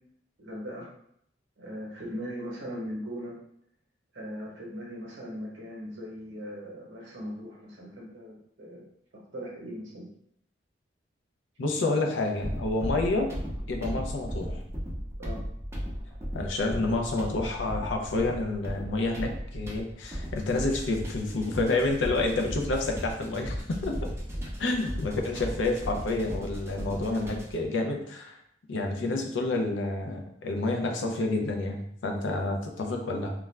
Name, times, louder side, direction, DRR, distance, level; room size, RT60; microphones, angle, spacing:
voice 1, 0.4-0.9 1.6-3.4 4.1-8.8 9.3-10.1 15.2-15.4, equal, 70° right, -3 dB, 0.8 m, -39 dB
voice 2, 11.6-13.3 13.7-14.6 16.3-24.1 24.6-28.4 28.7-33.3, left 2 dB, 85° left, 2 dB, 0.5 m, -29 dB
sound 1, 12.4-27.7, equal, 15° right, 0.5 m, -36 dB
2.4 x 2.2 x 3.1 m, 0.71 s
head